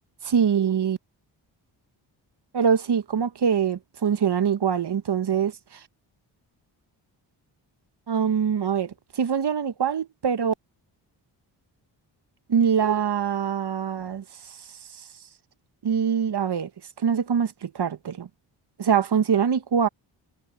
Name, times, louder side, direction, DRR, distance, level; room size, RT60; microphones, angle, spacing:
voice 1, 0.2-1.0 2.5-5.5 8.1-10.5 12.5-14.2 15.8-16.7 17.0-18.3 18.8-19.9, right 7 dB, 50° right, 1.4 m, -23 dB
supercardioid pair, 45°, 50 cm